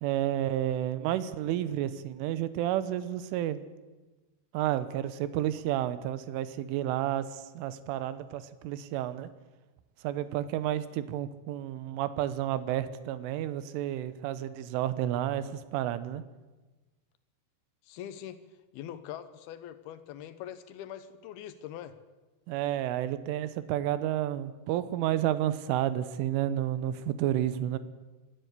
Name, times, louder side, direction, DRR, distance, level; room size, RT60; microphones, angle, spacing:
voice 1, 0.0-3.6 4.5-9.3 10.0-16.2 22.5-27.8, right 12 dB, 90° right, 14 dB, 3.4 m, -31 dB
voice 2, 17.8-18.4 18.7-22.0, left 10 dB, 70° left, 11 dB, 2.5 m, -43 dB
25.5 x 12.5 x 8.3 m, 1.2 s
omnidirectional pair, 5.6 m